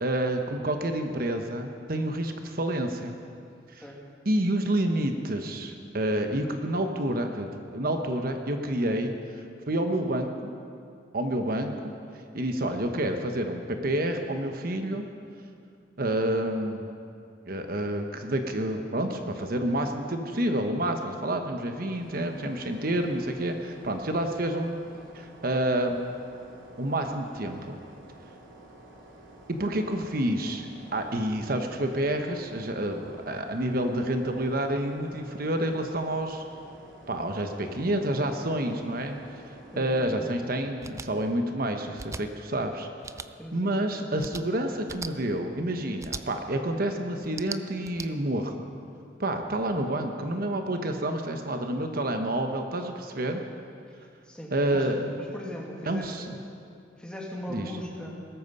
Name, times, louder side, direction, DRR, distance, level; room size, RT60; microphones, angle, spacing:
voice 1, 0.0-3.1 3.7-3.8 4.3-9.1 9.7-10.5 11.1-11.9 12.3-15.0 16.0-16.9 17.5-24.8 25.1-26.0 26.8-27.8 29.5-36.4 37.1-39.2 39.8-42.9 43.5-48.5 49.2-53.4 54.5-55.1 55.9-56.4 57.5-57.7, right 1 dB, 50° right, 5 dB, 1.0 m, -29 dB
sound 1, 21.9-40.0, right 1 dB, 80° right, 3.3 m, -50 dB
voice 2, 39.7-40.3 43.4-43.7 54.2-54.9 55.2-56.3 57.0-58.2, equal, 5° left, -2 dB, 2.3 m, -39 dB
sound 2, 40.8-41.1 41.9-42.2 43.0-43.3 44.2-44.4 44.9-45.1 46.0-46.2 47.2-48.1, right 4 dB, 15° right, 0.4 m, -38 dB
19.5 x 13.5 x 5.4 m, 2.4 s
head